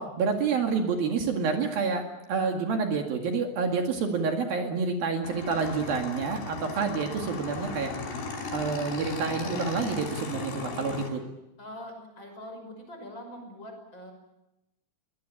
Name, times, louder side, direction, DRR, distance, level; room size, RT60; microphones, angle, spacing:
voice 1, 0.0-2.0 2.3-7.9 8.5-11.2, right 5 dB, 65° right, 3 dB, 3.8 m, -28 dB
Motorcycle / Engine, 5.2-11.1, left 4 dB, 90° left, 6.8 m, -36 dB
voice 2, 11.6-14.1, left 1 dB, 25° left, 4 dB, 6.4 m, -43 dB
23.5 x 19.5 x 9.0 m, 0.92 s
omnidirectional pair, 4.7 m